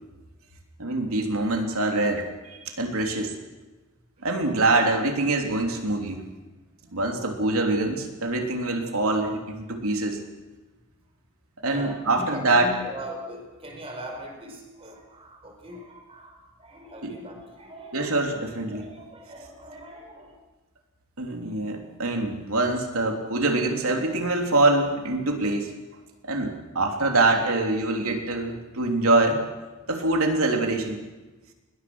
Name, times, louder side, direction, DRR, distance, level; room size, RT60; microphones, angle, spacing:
voice 1, 0.8-3.3 4.2-6.3 6.9-10.2 11.6-12.7 17.0-17.1 17.9-18.8 21.2-25.7 26.2-29.4 29.9-31.0, right 2 dB, 90° right, 3 dB, 3.3 m, -24 dB
voice 2, 11.7-18.2 18.7-20.4, equal, 25° right, 3 dB, 4.7 m, -40 dB
21.0 x 20.5 x 6.3 m, 1.2 s
head